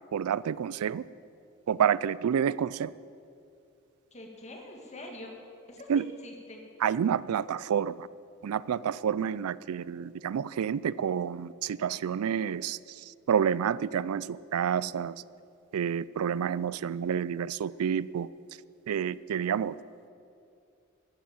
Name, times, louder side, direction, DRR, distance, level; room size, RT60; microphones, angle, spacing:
voice 1, 0.1-1.1 1.7-2.9 5.9-6.1 6.8-8.1 8.4-15.2 15.7-18.3 18.9-19.8, right 8 dB, 80° right, 20 dB, 0.4 m, -29 dB
voice 2, 4.1-5.4 5.7-6.6, left 1 dB, 30° left, 2 dB, 2.0 m, -44 dB
14.0 x 8.2 x 8.8 m, 2.5 s
head